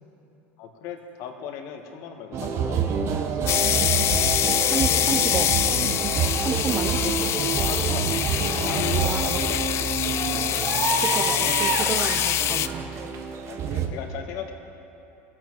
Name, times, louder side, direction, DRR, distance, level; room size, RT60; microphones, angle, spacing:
voice 1, 0.6-2.9 3.4-3.6 6.7-7.1 7.5-8.3 8.6-10.2 13.5-14.5, left 8 dB, 60° left, 4 dB, 1.4 m, -37 dB
sound 1, 2.3-13.9, right 6 dB, 45° right, 1.1 m, -27 dB
sound 2, 3.5-12.7, left 12 dB, 45° left, 0.4 m, -25 dB
voice 2, 4.7-5.5 6.4-7.0 9.0-9.5 11.0-12.9, right 6 dB, 30° right, 11 dB, 0.6 m, -31 dB
18.5 x 8.0 x 4.7 m, 2.9 s
supercardioid pair, 105°, 6 cm